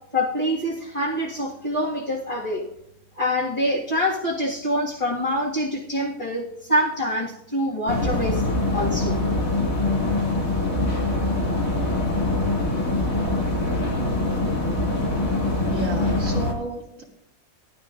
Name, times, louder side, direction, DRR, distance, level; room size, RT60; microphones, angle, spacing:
voice 1, 0.1-2.6 3.2-8.4 8.7-9.2, equal, 20° left, -7 dB, 1.9 m, -25 dB
sound 1, 7.9-16.5, left 2 dB, 75° left, 3.0 m, -23 dB
voice 2, 15.7-17.0, right 2 dB, 60° right, -3 dB, 2.5 m, -32 dB
19.5 x 11.5 x 2.6 m, 0.79 s
omnidirectional pair, 1.5 m